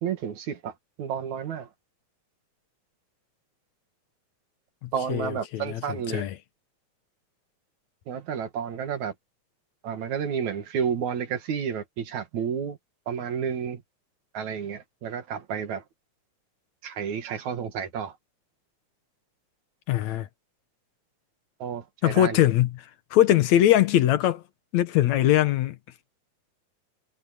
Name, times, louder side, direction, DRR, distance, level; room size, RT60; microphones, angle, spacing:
voice 1, 0.0-1.7 4.9-6.3 8.1-9.1 9.8-12.8 13.1-13.8 14.3-15.8 16.8-18.2 21.6-22.4, right 7 dB, 75° right, 3.3 m, -31 dB
voice 2, 4.8-5.8 6.1-6.3 19.9-20.3 22.0-22.7 23.1-24.4 24.7-25.8, left 12 dB, 75° left, 2.3 m, -21 dB
omnidirectional pair, 3.3 m